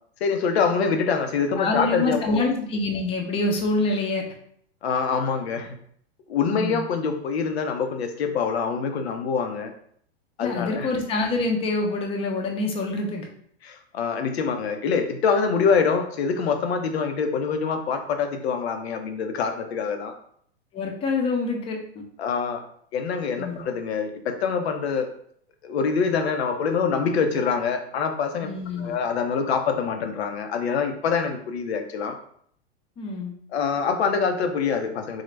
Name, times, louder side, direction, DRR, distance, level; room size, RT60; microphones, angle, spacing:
voice 1, 0.2-2.4 4.8-5.7 6.3-9.7 10.4-10.9 13.6-20.1 22.2-22.6 22.9-25.1 25.6-28.5 28.8-32.2 33.5-35.2, left 5 dB, 85° left, 6 dB, 0.7 m, -25 dB
voice 2, 1.6-4.2 6.5-6.9 10.4-13.3 20.7-22.0 23.4-23.6 28.4-28.9 33.0-33.3, left 2 dB, 20° left, 2 dB, 0.5 m, -26 dB
3.8 x 2.1 x 3.2 m, 0.64 s
supercardioid pair, 135°, 31 cm